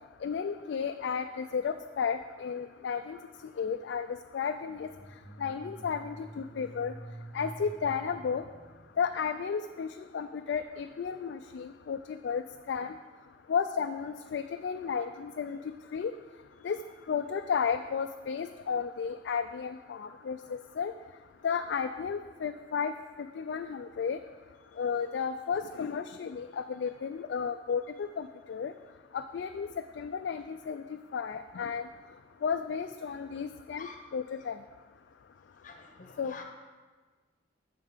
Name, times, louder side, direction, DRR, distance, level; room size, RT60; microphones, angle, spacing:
voice 1, 0.2-3.2 3.6-4.1 4.3-4.9 5.4-6.9 7.3-8.4 9.0-9.9 10.1-12.0 12.2-12.4 12.7-12.9 13.5-15.6 15.9-16.1 16.6-16.8 17.1-20.9 21.4-22.9 23.4-24.2 24.8-28.7 29.1-29.7 30.0-30.8 31.1-31.8 32.4-34.6 36.2-36.3, left 6 dB, 65° left, 7 dB, 0.3 m, -33 dB
sound 1, 4.6-9.5, right 1 dB, 30° right, 1.2 m, -48 dB
voice 2, 35.6-36.4, left 4 dB, 45° left, 4 dB, 1.0 m, -47 dB
9.3 x 6.5 x 5.0 m, 1.4 s
head